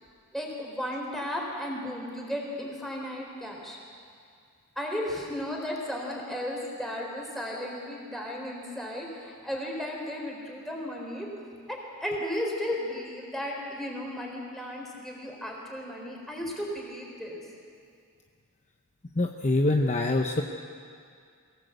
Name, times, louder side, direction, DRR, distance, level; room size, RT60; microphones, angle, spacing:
voice 1, 0.3-3.8 4.8-11.3 11.7-17.4, left 1 dB, ahead, -2 dB, 4.1 m, -34 dB
voice 2, 19.2-20.4, left 2 dB, 30° left, 3 dB, 0.8 m, -24 dB
23.5 x 17.0 x 8.0 m, 2.3 s
head